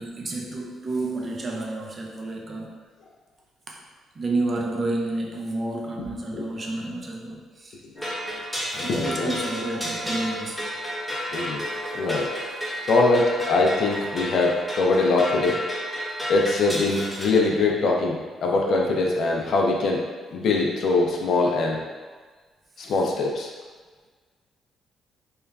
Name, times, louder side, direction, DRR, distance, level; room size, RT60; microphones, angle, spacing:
voice 1, 0.0-2.7 3.7-3.8 4.1-7.8 8.8-10.7 22.8-22.9, right 2 dB, 40° right, 0 dB, 0.4 m, -30 dB
voice 2, 7.9-8.4 8.7-9.3 11.3-11.6 11.9-12.3 12.8-15.6 16.3-20.0 20.3-21.8 22.8-23.5, left 3 dB, 65° left, -1 dB, 0.4 m, -23 dB
sound 1, 8.0-17.3, equal, 5° left, 0.6 m, -31 dB
2.9 x 2.3 x 2.3 m, 1.4 s
cardioid pair, 90°, 0 cm